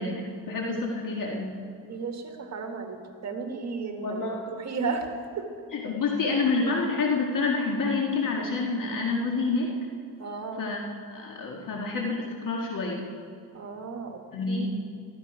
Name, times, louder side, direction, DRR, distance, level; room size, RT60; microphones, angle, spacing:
voice 1, 0.0-1.5 4.0-4.4 5.7-9.7 10.6-10.8 11.1-13.1 14.3-14.7, left 3 dB, 55° left, -1 dB, 1.9 m, -28 dB
voice 2, 1.9-5.5 10.2-10.6 13.5-14.7, right 4 dB, 45° right, 4 dB, 1.8 m, -34 dB
14.5 x 14.0 x 4.9 m, 2.4 s
cardioid pair, 100°, 39 cm